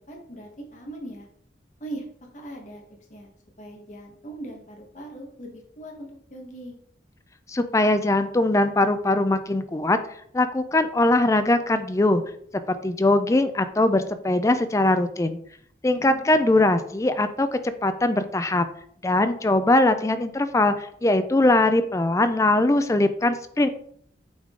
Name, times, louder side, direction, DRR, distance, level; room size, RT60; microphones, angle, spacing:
voice 1, 0.1-1.3 1.8-2.1 2.3-2.8 3.1-3.3 3.6-6.8 15.9-16.3, right 1 dB, 40° left, 1 dB, 1.3 m, -40 dB
voice 2, 7.5-10.0 10.3-12.2 12.7-15.4 15.8-18.7 19.0-23.7, left 2 dB, 15° left, 10 dB, 0.3 m, -21 dB
8.6 x 3.7 x 3.7 m, 0.65 s
head